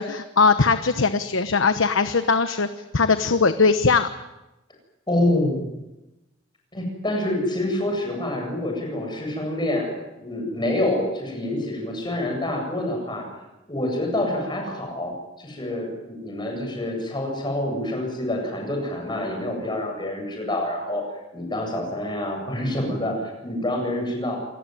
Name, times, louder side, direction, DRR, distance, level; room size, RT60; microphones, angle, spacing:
voice 1, 0.0-4.1, left 4 dB, 85° left, 10 dB, 1.1 m, -20 dB
voice 2, 5.1-5.7 6.7-9.9 10.2-13.3 13.7-15.1 15.4-21.0 21.3-24.4, left 1 dB, 25° left, 2 dB, 7.9 m, -27 dB
27.5 x 18.5 x 9.3 m, 0.99 s
head